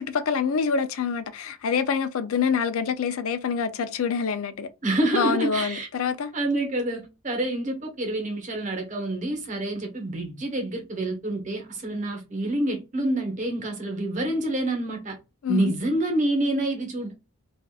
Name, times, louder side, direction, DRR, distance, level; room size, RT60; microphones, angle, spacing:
voice 1, 0.0-4.7 5.1-6.3 15.4-15.7, left 6 dB, 75° left, 0.4 m, -26 dB
voice 2, 4.8-5.9 6.3-15.2 15.5-17.2, right 1 dB, 35° right, 1.0 m, -27 dB
3.5 x 2.5 x 2.3 m
head